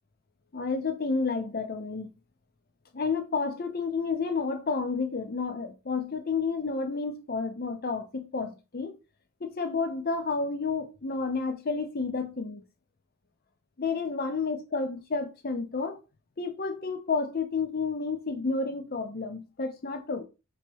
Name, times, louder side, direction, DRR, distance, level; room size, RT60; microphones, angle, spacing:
voice 1, 0.5-2.1 2.9-9.0 9.4-12.6 13.8-16.0 16.4-20.2, left 4 dB, 40° left, 0.6 m, -30 dB
3.0 x 2.9 x 4.5 m
head